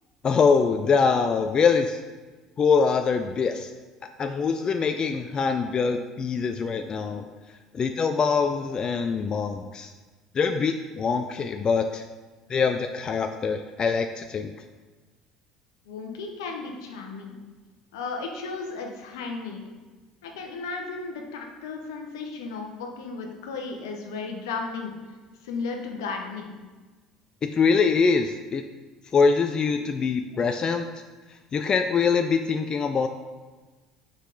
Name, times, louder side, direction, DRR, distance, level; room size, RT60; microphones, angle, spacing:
voice 1, 0.2-2.0 2.6-3.7 4.2-9.9 10.3-12.0 12.5-14.5 27.4-28.6 29.1-31.0 31.3-33.1, left 5 dB, 35° left, 7 dB, 0.4 m, -24 dB
voice 2, 15.9-17.4 17.9-19.6 20.2-24.9 25.4-26.5, left 4 dB, 70° left, 2 dB, 0.9 m, -34 dB
6.4 x 4.9 x 3.8 m, 1.3 s
figure-of-eight pair, 60°, 2 cm